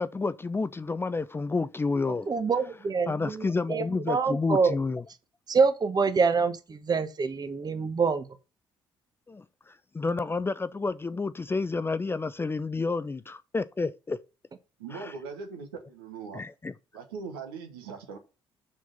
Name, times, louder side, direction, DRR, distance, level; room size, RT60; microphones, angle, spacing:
voice 1, 0.0-2.3 3.1-5.0 9.3-14.2 14.9-15.1 16.3-16.7, left 3 dB, 20° left, 0.5 m, -30 dB
voice 2, 2.3-4.8 5.5-8.3, right 5 dB, 30° right, 1.2 m, -26 dB
voice 3, 14.8-16.4 16.9-18.2, right 5 dB, 75° right, 1.4 m, -40 dB
6.9 x 5.9 x 5.4 m
figure-of-eight pair, 45°, 12 cm